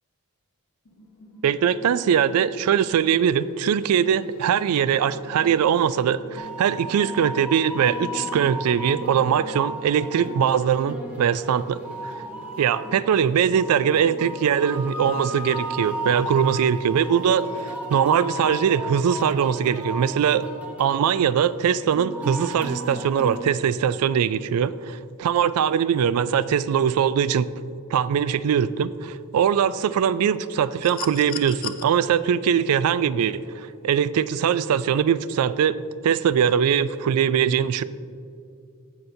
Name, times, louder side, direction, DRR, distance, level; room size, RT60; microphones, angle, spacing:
sound 1, 0.8-17.1 17.4-17.5, right 3 dB, 75° left, 1.3 m, -45 dB
voice 1, 1.4-12.2 12.6-20.5 20.8-27.5 27.9-35.7 36.0-37.8, right 8 dB, 90° right, 16 dB, 0.3 m, -21 dB
sound 2, 6.4-23.4, equal, 5° right, 1.0 m, -35 dB
sound 3, 30.8-31.8 33.4-33.5, left 10 dB, 40° left, 0.4 m, -35 dB
15.5 x 5.7 x 2.7 m, 2.4 s
head